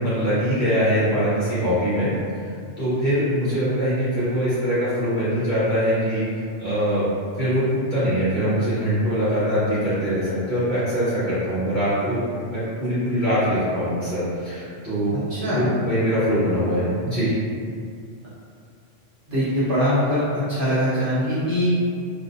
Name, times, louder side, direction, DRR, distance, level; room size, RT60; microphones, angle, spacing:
voice 1, 0.0-2.1 2.8-6.2 6.6-7.0 7.3-15.1 15.4-17.3, equal, 45° left, -12 dB, 0.9 m, -23 dB
voice 2, 15.1-15.6 19.3-21.7, equal, 50° right, -13 dB, 0.7 m, -22 dB
2.5 x 2.0 x 2.4 m, 2.3 s
omnidirectional pair, 1.3 m